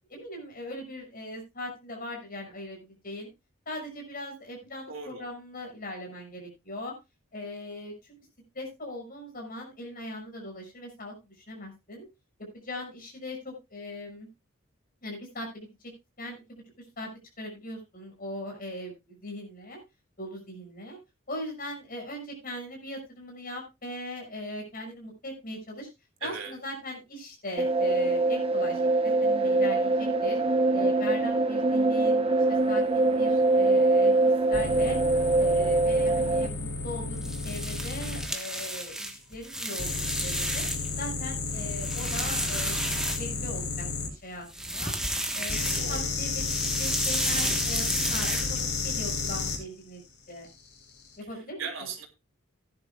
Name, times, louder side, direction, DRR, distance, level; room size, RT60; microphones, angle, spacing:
voice 1, 0.1-3.3 3.7-6.9 7.3-8.2 8.5-12.1 12.5-14.3 15.0-15.7 16.2-16.6 17.0-17.1 17.4-19.8 20.2-21.0 21.3-25.9 26.2-30.4 30.7-35.0 35.4-40.6 41.0-42.8 43.1-44.9 45.3-50.0 50.3-50.5 51.2-51.7, left 1 dB, 45° left, 2 dB, 6.3 m, -39 dB
voice 2, 4.9-5.2 26.2-26.5 45.7-46.2 51.3-52.1, right 5 dB, 70° right, 1 dB, 3.4 m, -38 dB
sound 1, 27.6-36.5, right 2 dB, 25° right, 1.0 m, -23 dB
sound 2, 34.5-38.3 39.8-44.1 45.5-49.6 50.8-51.1, left 4 dB, 85° left, 4.5 m, -32 dB
sound 3, 37.2-41.0 41.4-43.7 44.4-46.0 46.3-48.9, right 1 dB, 5° right, 1.3 m, -32 dB
17.0 x 11.0 x 2.4 m, 0.24 s
head